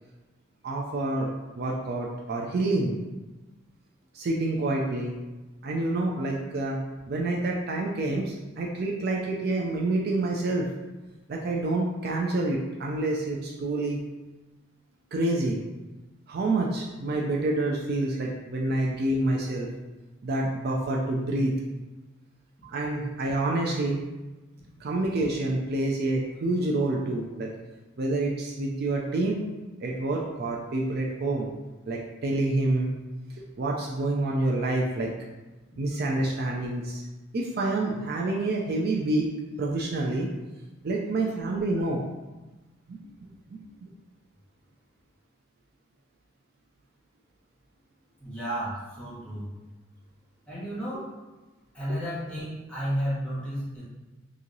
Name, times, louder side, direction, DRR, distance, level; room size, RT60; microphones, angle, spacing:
voice 1, 0.6-2.9 4.1-5.1 5.6-6.8 7.1-10.7 11.3-14.0 15.1-15.6 16.3-19.7 20.2-21.5 22.6-24.0 24.8-27.5 28.0-29.4 29.8-31.5 31.9-33.0 33.4-35.1 35.8-37.0 37.3-39.3 39.6-40.3 40.8-42.1 42.9-43.0 43.5-43.9 50.9-51.0 51.9-52.0, right 2 dB, 50° right, -1 dB, 0.4 m, -28 dB
voice 2, 48.2-49.5 50.5-51.1 51.7-53.8, equal, 5° left, -10 dB, 1.3 m, -32 dB
3.0 x 2.7 x 3.8 m, 1.1 s
head